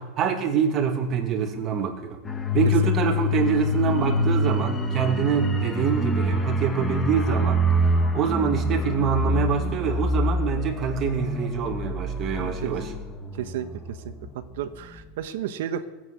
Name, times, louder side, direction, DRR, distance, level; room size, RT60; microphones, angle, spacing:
voice 1, 0.0-2.2 2.5-7.6 8.1-12.9, right 7 dB, 30° right, 2 dB, 2.5 m, -25 dB
sound 1, 2.2-14.6 14.9-15.1, left 1 dB, 15° left, 1.4 m, -26 dB
voice 2, 14.6-15.9, right 10 dB, 80° right, 9 dB, 1.2 m, -31 dB
18.5 x 8.2 x 8.3 m, 1.1 s
supercardioid pair, 145°, 0 cm